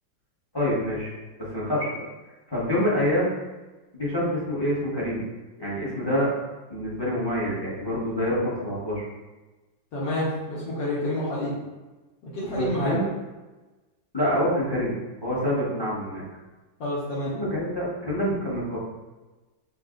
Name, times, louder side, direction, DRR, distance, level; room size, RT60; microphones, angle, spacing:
voice 1, 0.5-1.1 1.4-2.0 2.5-3.3 3.9-5.3 5.6-6.3 6.7-9.0 12.4-13.1 14.1-16.2 17.3-18.8, equal, 20° left, -8 dB, 0.7 m, -26 dB
voice 2, 9.9-11.5 12.3-13.0 16.8-17.3, left 1 dB, 75° left, -8 dB, 1.6 m, -28 dB
6.3 x 2.3 x 2.5 m, 1.2 s
omnidirectional pair, 2.0 m